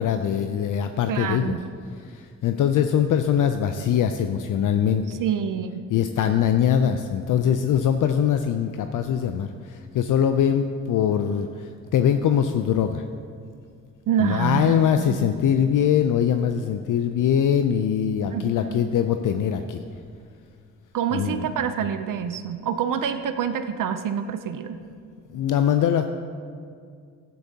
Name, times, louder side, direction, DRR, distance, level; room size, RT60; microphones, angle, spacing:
voice 1, 0.0-1.6 2.0-5.2 5.9-13.0 14.2-19.8 21.1-21.5 25.3-26.0, left 8 dB, 60° left, 8 dB, 0.5 m, -22 dB
voice 2, 1.1-1.6 5.1-5.8 14.1-15.3 18.3-18.9 20.9-24.8, right 8 dB, 60° right, 9 dB, 0.6 m, -27 dB
11.5 x 10.5 x 2.8 m, 2.2 s
supercardioid pair, 55°, 36 cm